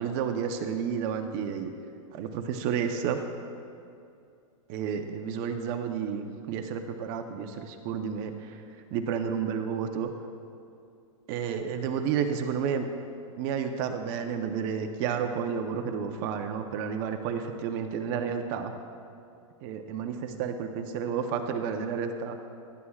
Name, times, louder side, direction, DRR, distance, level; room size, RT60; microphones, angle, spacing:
voice 1, 0.0-1.7 2.1-3.2 4.7-8.6 8.9-10.1 11.3-12.9 13.4-18.7 19.6-22.4, right 7 dB, 40° right, 6 dB, 0.9 m, -31 dB
18.5 x 12.5 x 2.4 m, 2.5 s
supercardioid pair, 150°, 18 cm